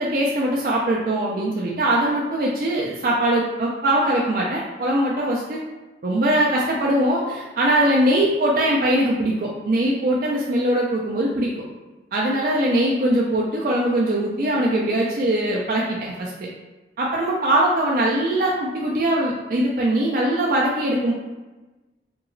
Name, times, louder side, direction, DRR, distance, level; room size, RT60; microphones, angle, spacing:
voice 1, 0.0-5.6 6.0-11.5 12.1-16.5 17.0-21.1, right 1 dB, 50° right, -3 dB, 0.3 m, -21 dB
2.9 x 2.8 x 2.6 m, 1.2 s
head